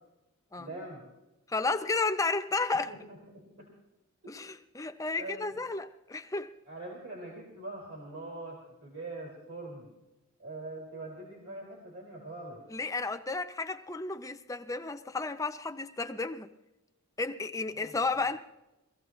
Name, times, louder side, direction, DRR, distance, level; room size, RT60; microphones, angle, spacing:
voice 1, 0.6-1.1 2.7-3.7 4.2-4.4 5.2-5.7 6.7-9.9 10.4-12.6 17.7-18.3, right 2 dB, 70° right, 4.2 m, -43 dB
voice 2, 1.5-2.9 4.3-6.6 12.7-16.5 17.2-18.4, left 3 dB, 15° left, 0.5 m, -32 dB
23.0 x 15.5 x 3.1 m
head